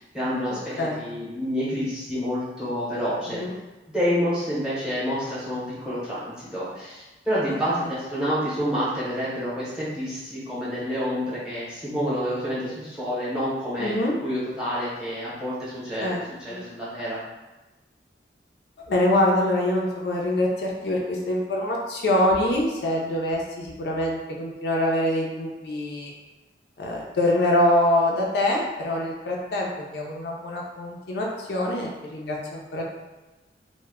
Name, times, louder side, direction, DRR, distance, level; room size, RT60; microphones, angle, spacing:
voice 1, 0.0-3.4 3.9-13.9 14.2-16.1 16.4-17.2, equal, 5° right, -9 dB, 0.7 m, -28 dB
voice 2, 13.8-14.1 16.0-16.2 16.5-16.6 18.9-26.1 26.8-32.8, left 1 dB, 65° left, -2 dB, 0.4 m, -24 dB
2.1 x 2.0 x 3.4 m, 1.1 s
head